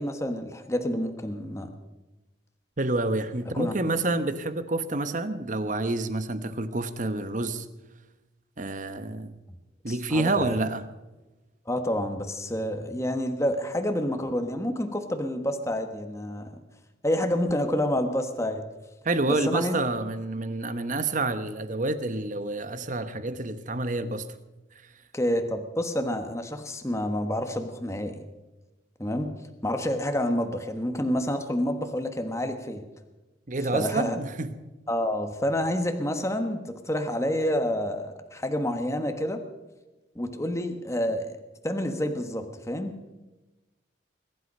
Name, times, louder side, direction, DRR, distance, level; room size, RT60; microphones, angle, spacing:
voice 1, 0.0-1.7 3.5-3.7 9.9-10.4 11.7-16.5 17.0-18.6 19.3-19.8 25.1-28.2 29.0-29.3 29.6-32.8 33.7-34.2 34.9-39.4 40.1-41.4 41.6-43.0, left 1 dB, 15° left, 1.3 m, -28 dB
voice 2, 2.8-7.7 8.6-9.4 9.8-10.9 19.0-24.2 33.5-34.6, right 2 dB, 45° right, 1.1 m, -28 dB
22.0 x 11.5 x 5.5 m
head